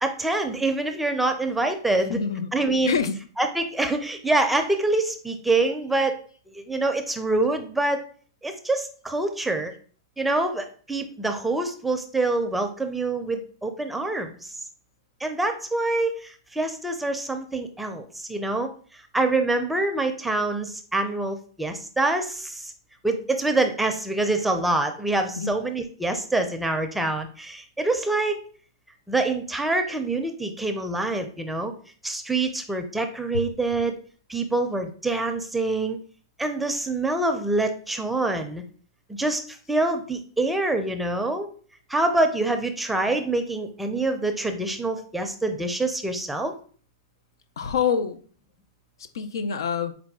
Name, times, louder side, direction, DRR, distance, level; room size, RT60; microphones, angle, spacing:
voice 1, 0.0-2.2 2.5-3.0 3.4-6.2 6.5-8.0 8.4-9.7 10.2-14.5 15.2-18.7 19.1-22.7 23.0-28.4 29.1-31.7 32.0-34.0 34.3-36.0 36.4-38.6 39.1-41.5 41.9-46.5, right 2 dB, 5° right, 5 dB, 0.5 m, -25 dB
voice 2, 2.1-2.5 2.9-3.3 25.4-25.6 47.6-48.2 49.1-49.9, left 6 dB, 85° left, 10 dB, 0.5 m, -26 dB
4.8 x 2.2 x 3.6 m, 0.43 s
hypercardioid pair, 135°, 2 cm